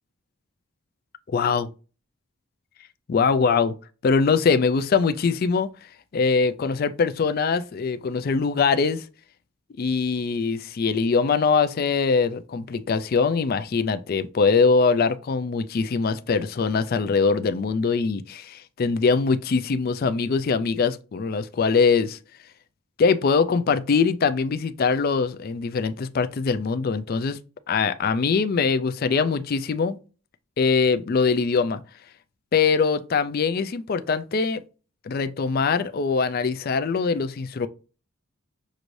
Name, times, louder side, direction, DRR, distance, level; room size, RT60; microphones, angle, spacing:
voice 1, 1.3-1.7 3.1-3.8 4.0-5.7 6.1-9.0 9.8-22.2 23.0-27.4 27.7-30.0 30.6-31.8 32.5-34.6 35.1-37.7, left 5 dB, 45° left, 0.3 m, -22 dB
6.3 x 2.6 x 3.1 m
head